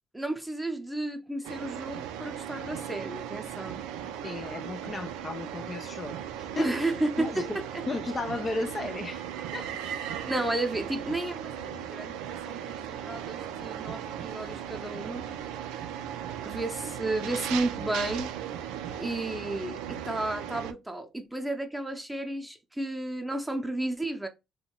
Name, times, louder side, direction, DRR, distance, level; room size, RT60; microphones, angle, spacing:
voice 1, 0.1-3.8 6.6-7.8 9.8-15.3 16.4-18.3 19.0-24.3, right 2 dB, 10° right, 0.7 m, -33 dB
sound 1, 1.4-20.7, right 9 dB, 85° right, 0.3 m, -37 dB
voice 2, 4.2-6.7 7.2-7.6 7.9-9.3 9.5-9.7, left 3 dB, 35° left, 0.3 m, -35 dB
2.7 x 2.2 x 2.9 m
supercardioid pair, 70°, 0 cm